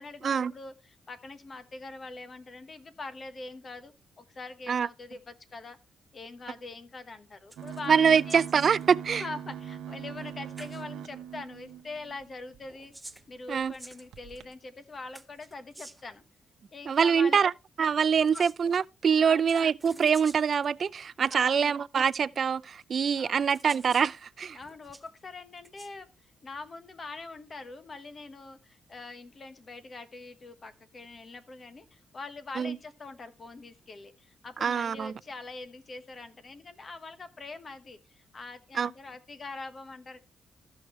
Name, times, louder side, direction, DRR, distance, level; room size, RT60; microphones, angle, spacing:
voice 1, 0.0-5.8 6.1-8.4 9.1-12.9 13.3-16.2 16.7-17.4 18.3-18.5 19.2-19.6 21.3-21.8 23.2-23.5 24.5-26.1 26.4-40.2, left 3 dB, 40° left, 1.2 m, -43 dB
sound 1, 7.5-7.9 8.2-8.9 10.2-10.3 10.6-10.8 12.6-14.5 15.1-16.2 18.1-18.8 19.5-20.7 21.6-21.7 22.8-22.9 23.5-24.1 24.6-25.1 25.6-25.9, right 2 dB, 15° right, 0.6 m, -50 dB
sound 2, 7.6-12.6 13.1-13.2 13.5-13.7 14.1-14.5, right 8 dB, 90° right, 0.9 m, -42 dB
voice 2, 7.9-9.2 13.5-13.7 16.9-17.5 17.8-24.6 32.6-32.8 34.6-35.1 38.7-38.9, right 7 dB, 55° right, 0.4 m, -24 dB
14.0 x 6.3 x 3.1 m
cardioid pair, 90°, 0 cm